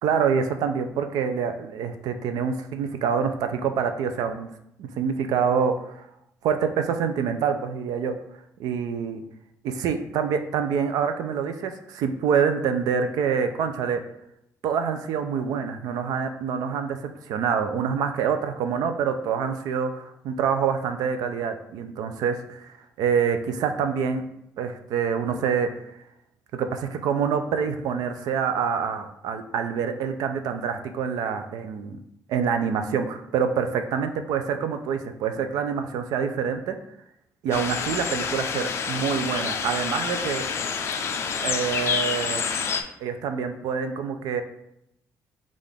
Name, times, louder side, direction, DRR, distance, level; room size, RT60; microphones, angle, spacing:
voice 1, 0.0-4.5 4.8-6.1 6.4-8.2 8.6-9.2 9.6-14.0 14.6-24.2 24.6-25.7 26.5-32.0 32.3-36.8 37.4-40.5 41.4-42.5 43.0-44.4, right 6 dB, 80° right, 8 dB, 0.5 m, -26 dB
sound 1, 37.5-42.8, left 6 dB, 45° left, 0.4 m, -28 dB
5.6 x 2.5 x 3.5 m, 0.78 s
cardioid pair, 160°, 6 cm